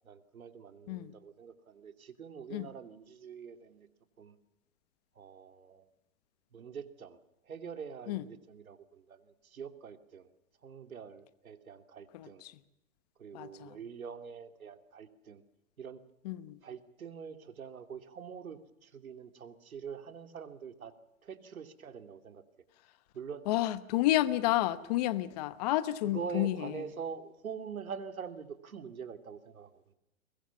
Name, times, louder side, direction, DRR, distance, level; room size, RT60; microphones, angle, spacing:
voice 1, 0.0-3.9 4.2-4.4 5.2-5.9 6.5-7.2 7.4-10.3 10.6-12.4 13.2-15.4 15.8-16.0 16.6-20.9 21.2-22.4 23.1-23.5 26.0-29.9, right 6 dB, 90° right, 8 dB, 2.8 m, -45 dB
voice 2, 12.1-12.6 13.3-13.8 16.2-16.6 23.5-26.8, left 15 dB, 30° left, 14 dB, 1.0 m, -31 dB
23.0 x 21.0 x 7.2 m, 0.88 s
hypercardioid pair, 155°, 41 cm